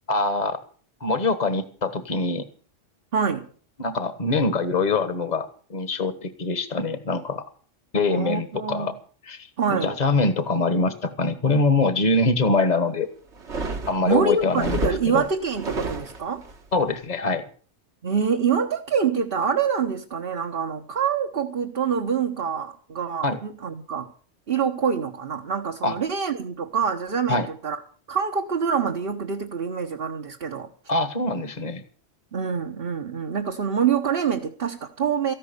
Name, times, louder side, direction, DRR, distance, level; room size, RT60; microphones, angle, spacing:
voice 1, 0.1-0.6 1.0-2.5 3.8-7.4 7.9-9.0 9.2-13.1 13.9-15.2 16.7-17.4 23.2-23.4 25.8-26.0 27.3-27.5 30.9-31.8, left 3 dB, 35° left, 1.5 m, -24 dB
voice 2, 3.1-3.5 8.1-8.9 9.6-9.9 14.0-16.4 18.0-24.1 24.5-27.8 28.1-30.7 32.3-35.3, right 6 dB, 50° right, 1.4 m, -25 dB
sound 1, 13.3-16.6, right 3 dB, 65° right, 2.1 m, -31 dB
14.5 x 12.0 x 6.9 m
omnidirectional pair, 1.2 m